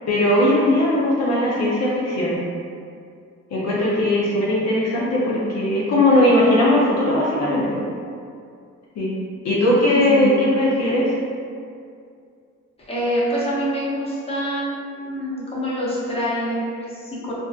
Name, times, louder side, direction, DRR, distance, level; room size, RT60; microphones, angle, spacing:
voice 1, 0.1-2.4 3.5-7.8 9.0-9.2 9.4-11.2, left 1 dB, 60° left, -6 dB, 0.6 m, -19 dB
voice 2, 9.9-10.4 12.8-17.3, equal, 20° left, -7 dB, 0.7 m, -26 dB
2.5 x 2.2 x 2.3 m, 2.3 s
cardioid pair, 90°, 30 cm